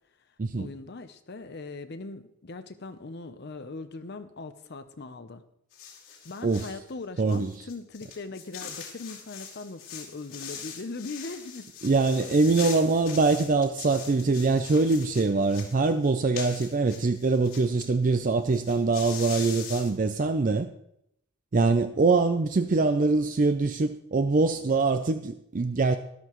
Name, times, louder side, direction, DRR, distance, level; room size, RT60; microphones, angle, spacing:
voice 1, 0.6-5.4 6.2-11.7 12.2-12.3 12.6-12.7, left 3 dB, 50° left, 10 dB, 0.6 m, -40 dB
sound 1, 5.7-6.8 7.3-17.9 18.1-18.2 18.4-19.9, left 7 dB, 70° left, 2.7 m, -42 dB
voice 2, 6.4-6.7 7.2-7.6 11.8-20.7 21.5-26.0, right 3 dB, 35° right, 8 dB, 0.4 m, -24 dB
13.0 x 12.0 x 3.1 m, 0.76 s
head